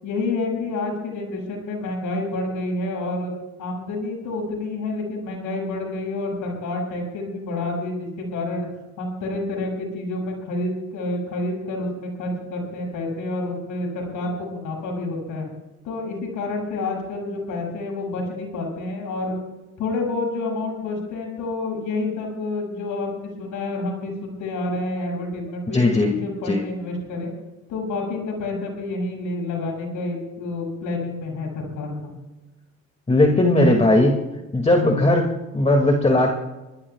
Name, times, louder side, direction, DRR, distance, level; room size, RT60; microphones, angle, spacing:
voice 1, 0.0-3.3 3.6-8.7 9.0-15.5 15.8-19.4 19.8-27.3 27.7-32.1, left 2 dB, 90° left, 0 dB, 7.6 m, -28 dB
voice 2, 25.7-26.1 26.4-26.6 33.1-34.1 34.5-36.3, left 1 dB, 20° left, 2 dB, 2.4 m, -18 dB
26.0 x 20.0 x 2.4 m, 1.1 s
cardioid pair, 90°, 30 cm